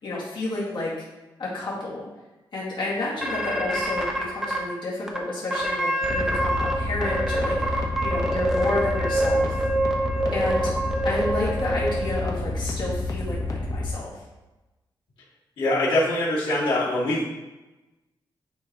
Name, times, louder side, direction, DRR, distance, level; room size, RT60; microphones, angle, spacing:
voice 1, 0.0-0.9 1.4-2.1 2.5-9.6 10.3-10.7 11.0-14.2, left 2 dB, 65° left, -7 dB, 2.2 m, -30 dB
sound 1, 3.2-4.6 5.1-5.2 5.5-6.7 7.0-12.2, right 1 dB, 5° right, 1.0 m, -26 dB
sound 2, 6.0-13.9, left 2 dB, 45° left, 1.0 m, -29 dB
voice 2, 15.6-17.2, left 1 dB, 85° left, -9 dB, 2.2 m, -23 dB
10.0 x 4.0 x 3.0 m, 1.1 s
wide cardioid pair, 140°, 9 cm